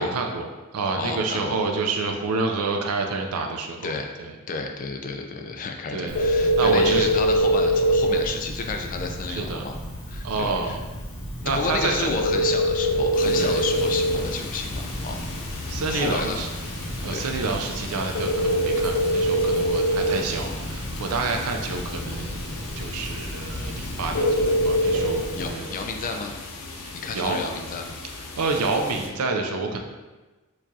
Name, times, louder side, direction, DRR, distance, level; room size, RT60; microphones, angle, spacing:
voice 1, 0.0-4.3 5.9-6.2 6.5-7.1 9.3-9.7 10.2-10.8 11.4-12.1 13.4-13.6 15.1-15.3 15.7-16.5 17.0-25.7 26.1-26.2 26.8-27.4 28.1-29.8, right 3 dB, 75° right, 3 dB, 0.5 m, -28 dB
voice 2, 1.0-1.6 3.8-4.1 4.5-9.8 10.1-10.8 11.5-15.2 15.9-16.4 17.1-17.3 21.2-21.4 25.3-26.3 27.0-28.0, left 4 dB, 35° left, 4 dB, 0.3 m, -31 dB
Telephone, 6.1-25.5, equal, 60° left, 1.2 m, -26 dB
sound 1, 11.4-25.8, right 1 dB, 55° right, 0.9 m, -45 dB
sound 2, 13.1-29.1, left 3 dB, 85° left, 0.6 m, -37 dB
4.5 x 2.4 x 2.7 m, 1.2 s
head